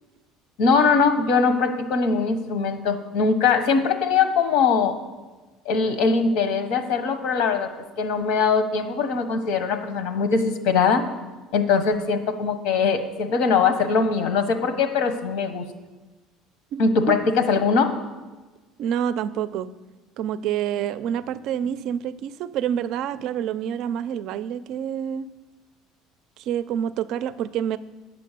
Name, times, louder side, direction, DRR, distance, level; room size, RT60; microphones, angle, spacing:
voice 1, 0.6-5.0 5.6-7.7 8.0-11.0 11.5-15.6 16.8-17.2 17.5-17.9, left 5 dB, 70° left, 8 dB, 1.2 m, -21 dB
voice 2, 16.7-17.2 18.8-19.7 20.2-25.3 26.4-27.8, right 9 dB, 50° right, 15 dB, 0.4 m, -27 dB
9.3 x 6.9 x 6.7 m, 1.2 s
cardioid pair, 160°, 0 cm